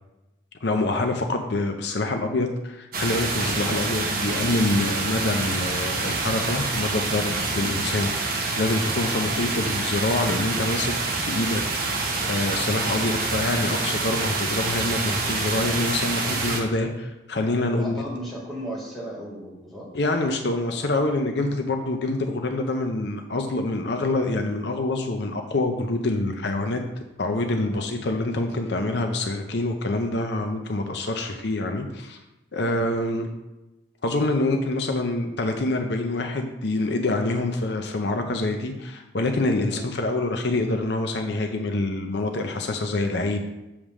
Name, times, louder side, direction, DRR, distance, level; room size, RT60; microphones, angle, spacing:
voice 1, 0.6-11.6 12.3-18.0 19.9-26.8 27.2-32.2 32.5-33.3 34.0-43.4, left 2 dB, 65° left, 4 dB, 0.6 m, -26 dB
sound 1, 2.9-16.6, right 3 dB, 50° right, 1.0 m, -27 dB
voice 2, 17.7-19.9 27.7-27.9 31.0-31.2 32.6-32.8 39.7-39.8, right 1 dB, ahead, -7 dB, 1.8 m, -36 dB
7.2 x 3.4 x 6.1 m, 1.0 s
head